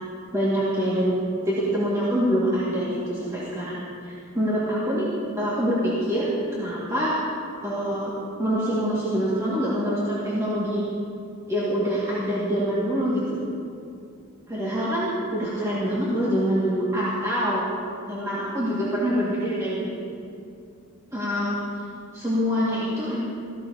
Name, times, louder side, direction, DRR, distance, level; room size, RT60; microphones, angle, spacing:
voice 1, 0.3-3.8 4.1-5.1 5.4-7.2 7.6-8.1 8.4-10.8 11.5-13.4 14.5-17.6 18.1-20.0 21.1-21.6 22.1-23.2, equal, 15° right, -10 dB, 2.1 m, -25 dB
17.0 x 15.0 x 2.9 m, 2.4 s
head